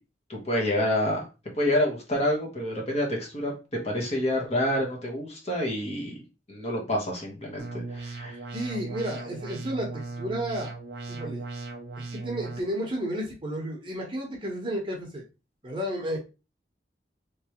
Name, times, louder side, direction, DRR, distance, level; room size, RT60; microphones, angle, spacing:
voice 1, 0.3-1.2 1.5-6.2 6.5-8.4, left 1 dB, 35° left, 0 dB, 1.2 m, -28 dB
sound 1, 7.6-12.6, right 3 dB, 85° right, 0.8 m, -37 dB
voice 2, 8.5-10.7 11.1-11.4 12.0-15.2 15.6-16.2, equal, 30° right, 0 dB, 1.0 m, -32 dB
3.2 x 3.2 x 2.9 m, 0.28 s
head